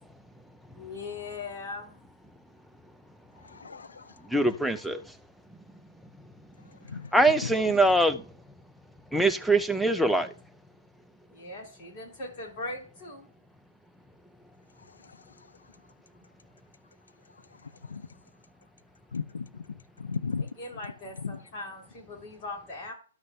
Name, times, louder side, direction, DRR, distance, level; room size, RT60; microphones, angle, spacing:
voice 1, 0.7-2.0 11.3-13.3 20.4-22.9, left 2 dB, 35° left, 4.8 m, -40 dB
voice 2, 3.4-4.1 6.8-7.1 7.4-7.7 15.1-15.2 17.9-18.1 19.1-19.6 20.0-20.4 21.2-21.4, left 5 dB, 85° left, 0.6 m, -35 dB
voice 3, 4.3-5.0 7.1-8.2 9.1-10.3, right 2 dB, ahead, 0.5 m, -23 dB
12.0 x 5.9 x 2.8 m
hypercardioid pair, 140°, 0 cm